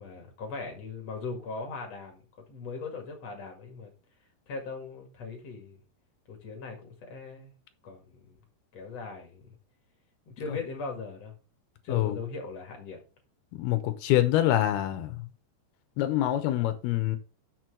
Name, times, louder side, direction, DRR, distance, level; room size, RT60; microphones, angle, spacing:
voice 1, 0.0-2.2 2.5-3.9 4.5-5.8 6.3-7.5 7.8-8.4 8.7-9.4 10.3-11.3 11.8-13.0, left 4 dB, 45° left, 2.5 m, -39 dB
voice 2, 13.6-15.2 16.0-17.2, left 13 dB, 75° left, 2.6 m, -25 dB
6.8 x 6.1 x 6.2 m
omnidirectional pair, 4.9 m